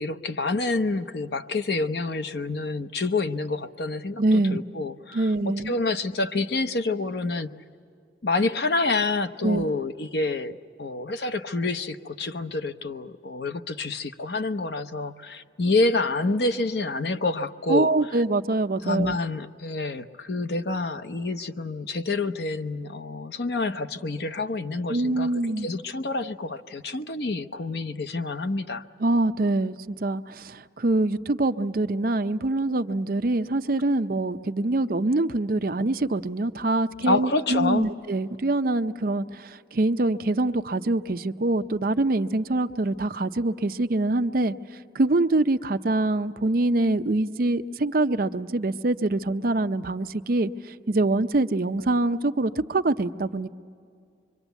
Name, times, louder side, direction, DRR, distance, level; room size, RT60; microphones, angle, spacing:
voice 1, 0.0-7.5 8.2-17.9 18.8-25.3 25.6-28.8 37.1-37.9, left 3 dB, 60° left, 8 dB, 0.8 m, -28 dB
voice 2, 4.2-4.6 5.1-5.7 9.4-9.6 17.7-19.2 24.9-25.7 29.0-44.5 44.9-53.5, right 2 dB, 50° right, 9 dB, 0.6 m, -24 dB
25.0 x 24.0 x 8.2 m, 2.3 s
head